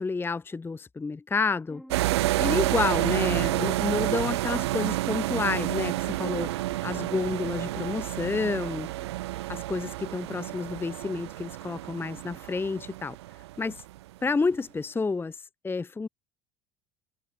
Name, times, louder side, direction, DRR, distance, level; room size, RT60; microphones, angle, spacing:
voice 1, 0.0-1.8 2.4-8.9 9.5-13.2 13.6-13.8 14.2-16.1, left 4 dB, 15° left, 0.7 m, -30 dB
sound 1, 1.7-9.1, equal, ahead, 1.9 m, -48 dB
sound 2, 1.9-14.0, right 17 dB, 80° right, 0.6 m, -29 dB
hypercardioid pair, 70°, 14 cm